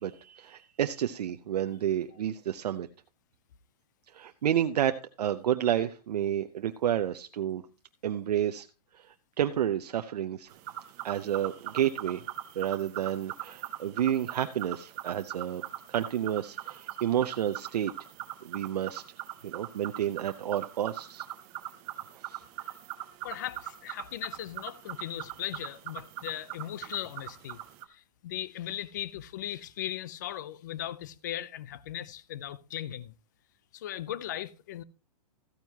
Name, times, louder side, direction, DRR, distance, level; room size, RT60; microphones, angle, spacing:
voice 1, 0.0-2.9 4.1-7.6 8.0-8.7 8.9-10.5 11.0-12.2 12.6-15.6 15.9-17.9 18.4-19.0 19.4-21.2 22.1-22.4, right 10 dB, 80° right, 0.6 m, -30 dB
sound 1, 10.5-27.8, right 14 dB, 20° right, 0.6 m, -41 dB
voice 2, 23.2-27.6 27.9-33.1 33.7-34.8, left 12 dB, 30° left, 0.4 m, -38 dB
14.0 x 9.1 x 2.8 m
hypercardioid pair, 170°, 20 cm